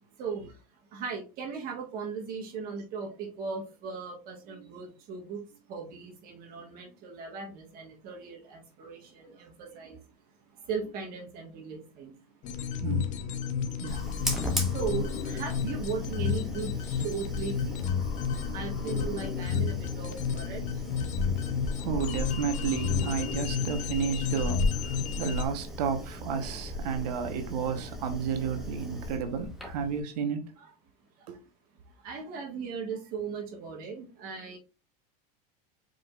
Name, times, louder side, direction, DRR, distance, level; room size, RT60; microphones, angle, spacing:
voice 1, 0.2-0.6 0.9-10.0 10.6-12.1 14.7-18.0 18.3-21.1 24.0-24.1 30.6-30.7 31.2-31.4 32.0-34.6, right 5 dB, 45° right, 1.5 m, -38 dB
sound 1, 12.4-25.4, left 7 dB, 40° left, 0.6 m, -32 dB
Fire, 13.9-30.0, left 1 dB, ahead, 1.1 m, -37 dB
voice 2, 21.8-30.5 31.3-31.4, right 6 dB, 80° right, 1.0 m, -32 dB
4.9 x 3.8 x 2.4 m
supercardioid pair, 125°, 21 cm